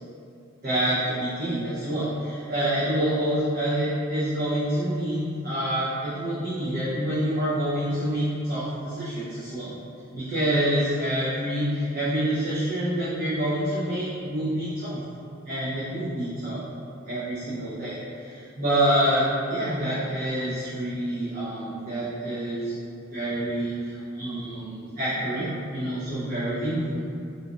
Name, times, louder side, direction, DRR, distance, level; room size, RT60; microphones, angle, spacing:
voice 1, 0.6-9.7 10.1-15.0 15.4-16.6 17.1-22.7 23.1-27.0, right 1 dB, 45° right, -12 dB, 0.8 m, -27 dB
4.0 x 2.8 x 2.4 m, 2.6 s
head